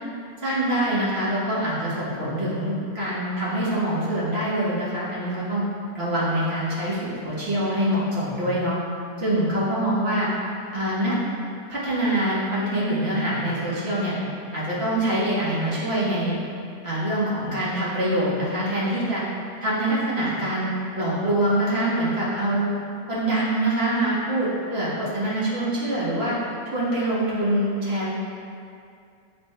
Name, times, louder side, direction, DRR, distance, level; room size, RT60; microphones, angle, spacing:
voice 1, 0.4-5.6 5.9-8.8 9.2-10.3 10.7-11.1 11.7-14.1 14.5-16.4 16.8-19.2 19.6-20.7 21.0-22.7 23.1-26.3 26.7-28.1, right 1 dB, 35° right, -9 dB, 1.8 m, -24 dB
9.2 x 4.1 x 3.3 m, 2.4 s
omnidirectional pair, 1.9 m